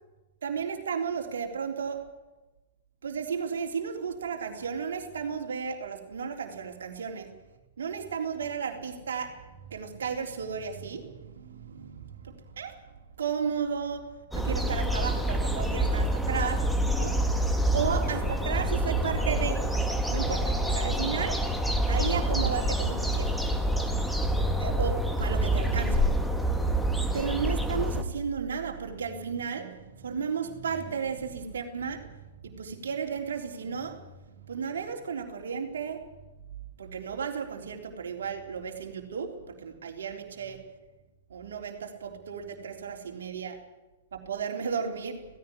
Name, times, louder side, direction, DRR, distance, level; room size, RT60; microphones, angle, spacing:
voice 1, 0.4-2.1 3.0-7.3 7.8-12.8 13.2-17.5 17.7-19.7 20.1-21.5 21.9-23.4 24.4-36.1 36.8-40.7 41.3-43.6 44.1-45.3, right 6 dB, 70° right, 3 dB, 3.6 m, -34 dB
sound 1, 14.3-28.0, right 1 dB, ahead, 2.2 m, -27 dB
17.0 x 16.0 x 10.0 m, 1.1 s
figure-of-eight pair, 105°, 0 cm